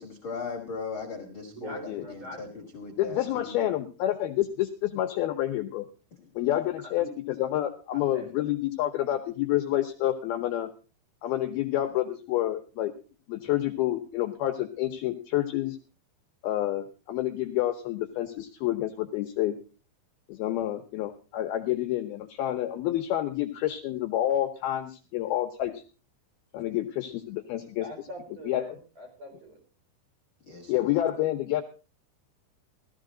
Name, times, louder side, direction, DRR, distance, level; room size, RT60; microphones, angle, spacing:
voice 1, 0.0-3.7 30.4-30.9, left 4 dB, 40° left, 2 dB, 1.9 m, -38 dB
voice 2, 1.5-2.6 6.8-7.1 7.9-8.3 27.8-29.6, equal, 45° right, 1 dB, 6.3 m, -43 dB
voice 3, 3.0-5.9 6.4-10.7 11.2-12.9 13.3-15.8 16.4-19.6 20.3-25.8 26.5-27.9 28.5-28.7 30.7-31.6, left 13 dB, 75° left, 5 dB, 2.4 m, -28 dB
15.5 x 14.5 x 3.8 m, 0.35 s
omnidirectional pair, 5.2 m